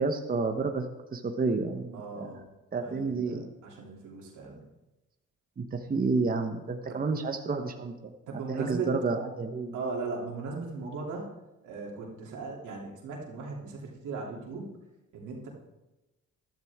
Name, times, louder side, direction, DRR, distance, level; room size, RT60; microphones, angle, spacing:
voice 1, 0.0-2.3 2.7-3.5 5.6-7.9 8.5-9.7, right 4 dB, 30° right, 5 dB, 1.1 m, -30 dB
voice 2, 1.9-2.4 2.8-4.6 6.9-7.0 8.3-9.0 9.7-11.3 11.6-14.7 15.1-15.5, right 4 dB, 85° right, -2 dB, 2.9 m, -38 dB
13.5 x 12.0 x 3.6 m, 1.0 s
cardioid pair, 90°, 30 cm